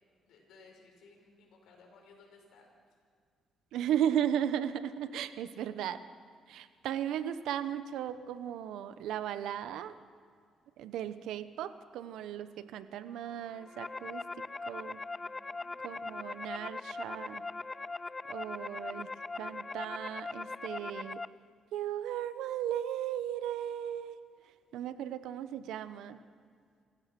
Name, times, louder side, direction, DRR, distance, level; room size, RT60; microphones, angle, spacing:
voice 1, 0.3-2.7 15.0-16.0, left 3 dB, 80° left, 1 dB, 5.7 m, -60 dB
voice 2, 3.7-6.0 6.5-9.9 10.8-14.3 14.7-15.0 15.8-17.4 18.3-19.1 19.4-21.2 21.7-24.2 24.7-26.2, right 10 dB, 85° right, 12 dB, 0.9 m, -36 dB
sound 1, 13.4-21.3, left 3 dB, 25° left, 0.4 m, -40 dB
27.5 x 16.0 x 6.0 m, 2.1 s
cardioid pair, 90°, 0 cm